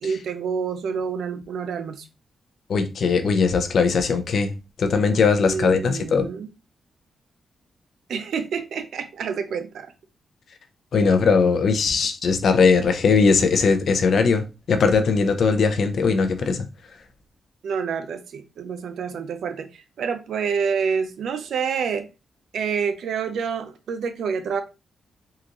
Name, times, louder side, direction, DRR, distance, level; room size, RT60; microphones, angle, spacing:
voice 1, 0.0-2.0 5.4-6.5 8.1-9.9 17.6-22.1 22.5-24.6, right 6 dB, 80° right, 0.5 m, -28 dB
voice 2, 2.7-4.5 4.8-6.3 10.9-16.6, left 5 dB, 65° left, 0.6 m, -20 dB
3.8 x 2.5 x 2.9 m
cardioid pair, 85°, 0 cm